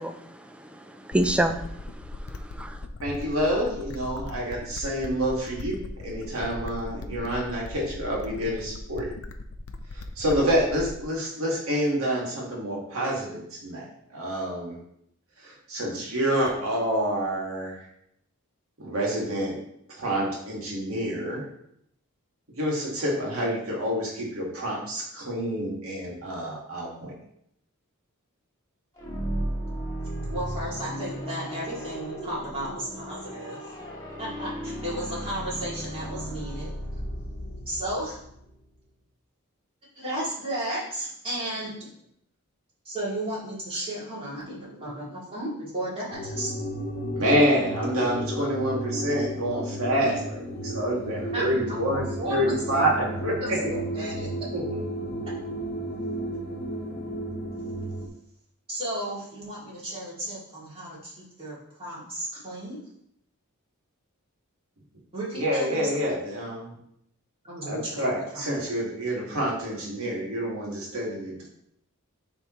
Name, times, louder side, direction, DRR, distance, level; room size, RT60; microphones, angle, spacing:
voice 1, 0.0-2.8, right 1 dB, 5° right, 7 dB, 0.4 m, -29 dB
sound 1, 1.1-11.1, left 2 dB, 65° left, 0.5 m, -39 dB
voice 2, 3.0-9.1 9.9-14.8 15.4-17.8 18.8-19.6 20.0-21.4 22.6-27.1 47.1-50.1 50.5-52.0 52.3-53.7 54.5-54.8 65.3-66.8 67.6-71.5, equal, 65° right, -3 dB, 2.1 m, -27 dB
sound 2, 29.0-38.7, right 1 dB, 20° left, 1.8 m, -35 dB
voice 3, 30.3-33.8 34.2-36.7 37.7-38.2 39.9-41.8 42.8-46.7 50.0-50.1 51.3-52.9 53.4-54.3 58.7-62.8 65.1-66.1 67.4-68.7, right 1 dB, 25° right, -8 dB, 2.6 m, -34 dB
sound 3, 46.1-58.1, equal, 45° left, 1.1 m, -33 dB
10.5 x 3.5 x 3.1 m, 0.74 s
head